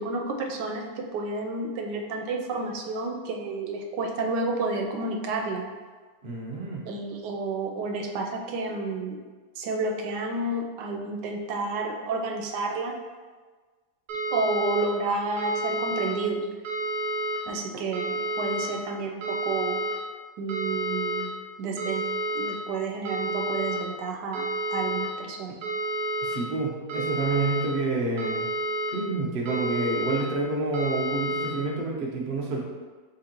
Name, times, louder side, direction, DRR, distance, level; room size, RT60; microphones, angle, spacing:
voice 1, 0.0-5.7 6.9-9.2 9.6-12.9 14.3-16.5 17.5-19.8 20.4-21.3 21.6-22.0 22.3-24.4 24.7-25.6, right 3 dB, 85° right, 2 dB, 1.2 m, -30 dB
voice 2, 6.2-6.8 26.2-28.5 28.9-32.6, right 3 dB, 45° right, -3 dB, 0.7 m, -28 dB
sound 1, 14.1-14.8 15.4-16.1 16.6-17.4 17.9-18.7 19.2-19.9 20.5-21.2 21.8-22.5 23.0-23.8 24.3-25.1 25.6-26.3 26.9-27.6 28.2-28.9 29.5-30.2 30.7-31.5, right 1 dB, 65° right, 1.3 m, -29 dB
4.4 x 3.9 x 2.9 m, 1.4 s
omnidirectional pair, 1.8 m